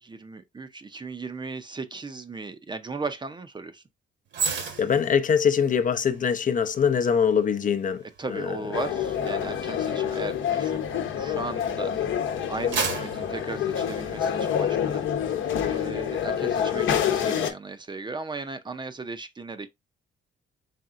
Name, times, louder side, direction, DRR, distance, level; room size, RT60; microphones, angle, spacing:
voice 1, 0.0-3.8 8.2-10.9 11.1-11.9 12.5-15.1 15.7-19.7, right 3 dB, 25° right, 0.6 m, -36 dB
sound 1, 4.3-11.7 12.2-14.5 14.9-15.1, right 5 dB, 65° right, 1.2 m, -36 dB
voice 2, 4.6-8.6, left 7 dB, 40° left, 0.6 m, -23 dB
sound 2, 8.7-17.5, left 8 dB, 75° left, 0.9 m, -27 dB
4.2 x 3.5 x 2.5 m
cardioid pair, 90°, 20 cm